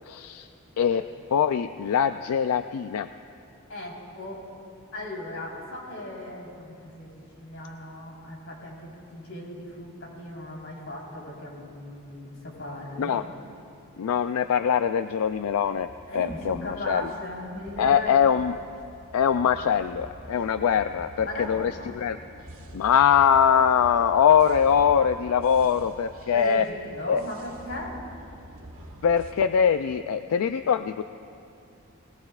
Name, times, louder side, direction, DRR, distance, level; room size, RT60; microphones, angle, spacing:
voice 1, 0.1-0.5 0.8-1.0 1.3-3.1 13.0-13.3 14.0-15.9 16.2-17.1 17.8-18.6 19.1-22.2 22.7-26.7 27.1-27.2 29.0-31.0, left 7 dB, 85° left, 10 dB, 0.4 m, -22 dB
voice 2, 3.7-4.4 4.9-13.2 16.1-18.1 21.2-22.0 26.3-27.9, left 1 dB, 60° left, -3 dB, 3.9 m, -37 dB
sound 1, 15.2-29.3, right 1 dB, 80° right, 1.5 m, -46 dB
20.5 x 20.0 x 2.4 m, 2.6 s
head